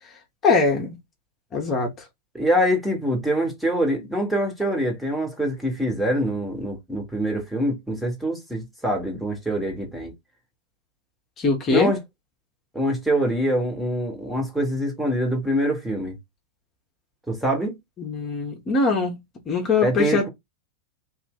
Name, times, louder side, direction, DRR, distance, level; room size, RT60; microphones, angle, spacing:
voice 1, 0.4-1.0 1.5-1.9 11.4-11.9 18.0-19.2 19.5-20.3, left 4 dB, 25° left, 1.0 m, -22 dB
voice 2, 2.3-10.1 11.7-12.0 12.7-16.2 17.3-17.8 19.8-20.3, equal, ahead, 1.3 m, -24 dB
3.2 x 2.5 x 3.6 m
figure-of-eight pair, 90°, 0 cm